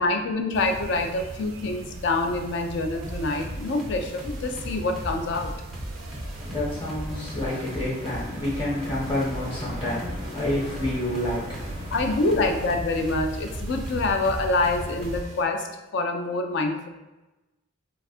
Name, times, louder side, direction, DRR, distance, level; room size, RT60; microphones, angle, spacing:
voice 1, 0.0-5.5 11.9-16.9, left 2 dB, 55° left, 4 dB, 0.3 m, -26 dB
sound 1, 0.5-15.2, right 1 dB, 80° right, 0.4 m, -39 dB
sound 2, 3.0-15.4, equal, ahead, 0.5 m, -38 dB
voice 2, 6.4-12.3, left 1 dB, 25° left, -6 dB, 1.0 m, -29 dB
3.4 x 2.4 x 2.3 m, 1.0 s
head